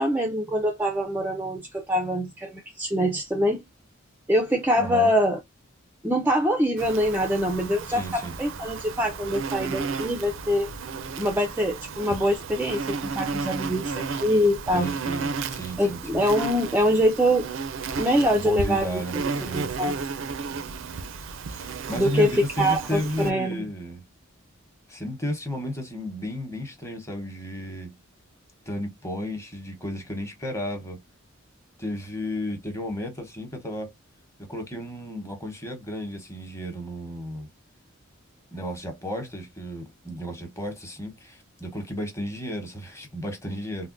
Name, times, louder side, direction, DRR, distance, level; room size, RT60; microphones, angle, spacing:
voice 1, 0.0-3.6 4.3-5.4 6.0-10.7 11.2-14.9 15.8-17.5 18.0-19.3 19.5-20.0 22.0-23.7, equal, 10° right, 0.4 m, -24 dB
voice 2, 4.8-5.1 7.9-8.3 14.7-16.2 18.3-19.7 21.5-24.0 24.9-27.9 28.7-31.0 31.8-33.9 34.4-37.5 38.5-43.9, equal, 15° left, 0.9 m, -33 dB
Insect, 6.8-23.3, right 5 dB, 65° right, 0.4 m, -33 dB
3.5 x 2.1 x 2.5 m
head